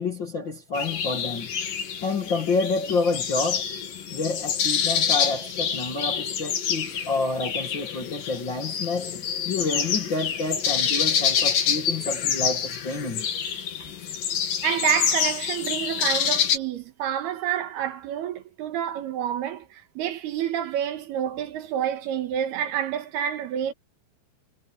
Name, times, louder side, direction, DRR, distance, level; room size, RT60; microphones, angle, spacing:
voice 1, 0.0-1.5 2.0-3.6 4.1-13.3, left 3 dB, 40° left, 1.8 m, -28 dB
sound 1, 0.7-16.6, left 7 dB, 60° left, 3.9 m, -27 dB
voice 2, 14.4-23.7, right 10 dB, 75° right, 3.5 m, -28 dB
omnidirectional pair, 4.8 m